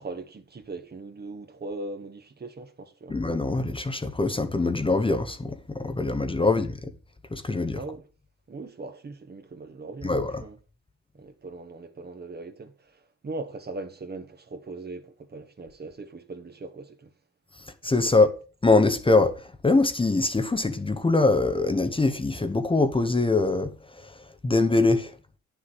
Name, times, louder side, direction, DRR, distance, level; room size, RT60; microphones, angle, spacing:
voice 1, 0.0-3.2 7.7-8.1 8.5-10.6 11.1-17.1 18.0-18.1, right 3 dB, 35° right, 1.5 m, -40 dB
voice 2, 3.1-6.9 7.3-7.8 10.0-10.4 17.8-18.3 18.6-24.2 24.4-25.1, left 3 dB, 15° left, 1.0 m, -23 dB
9.5 x 6.9 x 4.8 m
cardioid pair, 90°, 30 cm